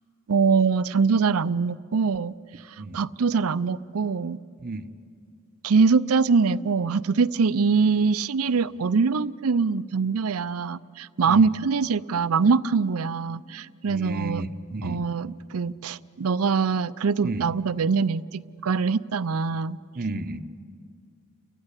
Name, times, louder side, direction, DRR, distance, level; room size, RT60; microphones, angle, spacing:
voice 1, 0.3-2.3 2.9-4.4 5.6-14.4 14.8-19.8, right 5 dB, 70° right, 17 dB, 0.5 m, -23 dB
voice 2, 13.9-15.0 17.2-17.5 20.0-20.4, right 2 dB, 45° right, 10 dB, 0.8 m, -32 dB
29.5 x 15.5 x 9.9 m, 2.3 s
head